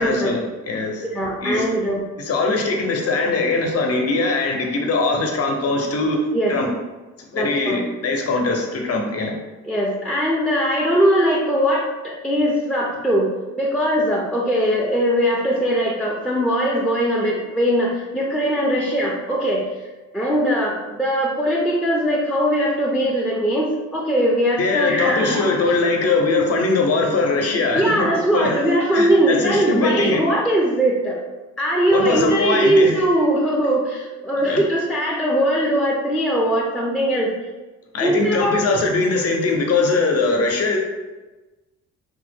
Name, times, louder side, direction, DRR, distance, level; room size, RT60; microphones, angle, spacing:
voice 1, 0.0-1.0 1.4-1.6 2.2-6.2 6.5-6.7 7.3-9.3 24.6-28.1 28.3-28.6 28.9-30.2 31.9-32.9 34.4-34.6 37.9-40.8, left 3 dB, 55° left, 2 dB, 0.7 m, -21 dB
voice 2, 1.1-2.0 6.3-6.5 7.4-7.8 9.6-13.3 13.6-19.6 20.1-25.9 27.7-31.2 31.6-37.3 38.0-38.6, equal, 5° left, -4 dB, 0.5 m, -20 dB
3.3 x 2.0 x 3.4 m, 1.1 s
cardioid pair, 90°, 30 cm